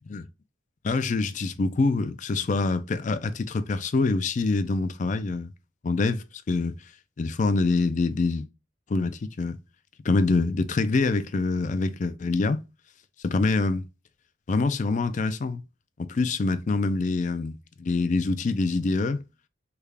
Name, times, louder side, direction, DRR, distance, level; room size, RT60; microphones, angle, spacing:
voice 1, 0.8-5.5 5.8-6.8 7.2-8.5 8.9-9.6 10.0-12.6 13.2-13.8 14.5-15.6 16.1-19.2, left 3 dB, 35° left, 0.3 m, -25 dB
3.5 x 2.3 x 3.2 m
head